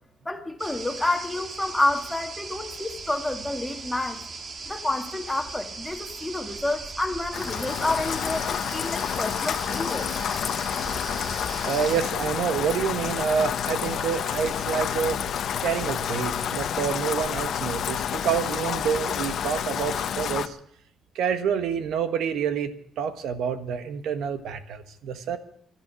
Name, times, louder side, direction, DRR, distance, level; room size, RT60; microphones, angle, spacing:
voice 1, 0.3-4.2 4.7-10.1, left 2 dB, 10° left, 2.0 m, -29 dB
sound 1, 0.6-12.0, right 4 dB, 45° right, 1.9 m, -38 dB
Rain, 7.3-20.5, left 9 dB, 65° left, 0.9 m, -29 dB
voice 2, 11.6-15.2 15.6-20.6 21.1-25.4, right 7 dB, 80° right, 1.4 m, -28 dB
12.5 x 11.0 x 9.9 m
cardioid pair, 90°, 0 cm